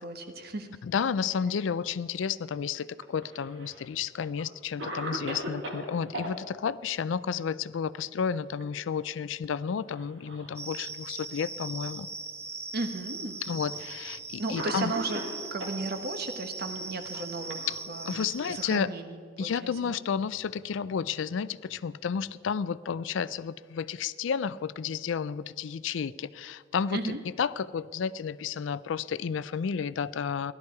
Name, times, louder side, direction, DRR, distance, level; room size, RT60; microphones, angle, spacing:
voice 1, 0.0-0.8 12.7-13.4 14.4-15.3 15.5-20.0 26.9-27.2, right 3 dB, 55° right, 7 dB, 1.2 m, -35 dB
voice 2, 0.8-12.1 13.5-14.9 17.7-17.8 18.1-18.9 19.4-30.5, left 6 dB, 70° left, 17 dB, 0.4 m, -31 dB
Cough, 3.0-3.9 4.4-4.5 4.8-6.3 8.2-8.6 9.0-9.1 9.9-10.6 11.4-11.5 12.5-12.6 13.7-13.9 14.6-15.8 16.8-18.2, right 1 dB, 70° right, 1.8 m, -38 dB
sound 1, 10.6-18.8, right 4 dB, 15° right, 0.6 m, -40 dB
16.5 x 12.0 x 4.7 m, 2.1 s
head